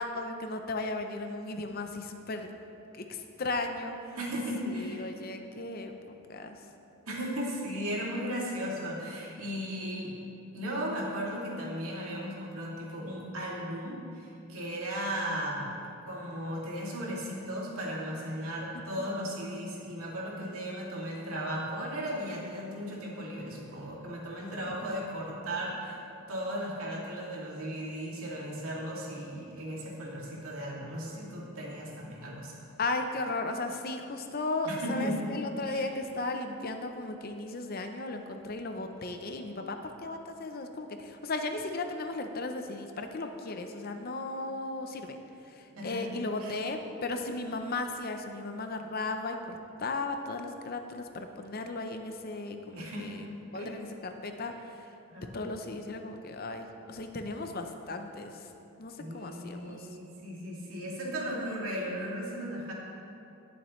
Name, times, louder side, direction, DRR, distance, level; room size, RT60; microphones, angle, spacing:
voice 1, 0.0-2.5 2.9-4.2 4.7-6.0 6.3-6.6 18.7-19.2 24.7-25.1 32.8-45.2 45.5-54.9 55.2-58.5 58.8-59.9, left 2 dB, 45° left, 6 dB, 0.7 m, -36 dB
voice 2, 4.2-5.0 7.1-10.2 10.5-26.0 26.3-32.5 34.6-35.2 35.7-35.8 45.7-46.1 46.4-46.5 52.7-53.1 53.5-53.7 55.1-55.3 59.0-62.7, equal, 85° right, -4 dB, 2.6 m, -36 dB
19.5 x 7.2 x 3.2 m, 2.7 s
head